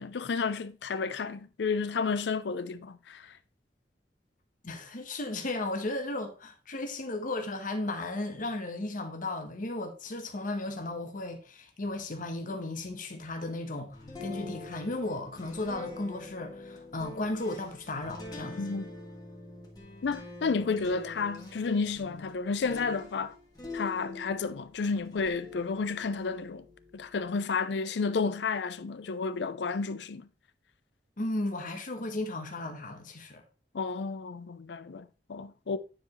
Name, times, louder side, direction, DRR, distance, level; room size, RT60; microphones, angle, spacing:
voice 1, 0.0-3.3 18.6-18.8 20.0-23.3 23.7-26.6 26.9-30.3 33.7-35.8, left 4 dB, 70° left, 0.5 m, -31 dB
voice 2, 4.6-18.6 31.2-33.4, left 2 dB, 50° left, 1.1 m, -35 dB
sound 1, 13.9-24.5 25.0-27.3, left 2 dB, 25° left, 1.9 m, -45 dB
9.3 x 4.8 x 3.1 m
head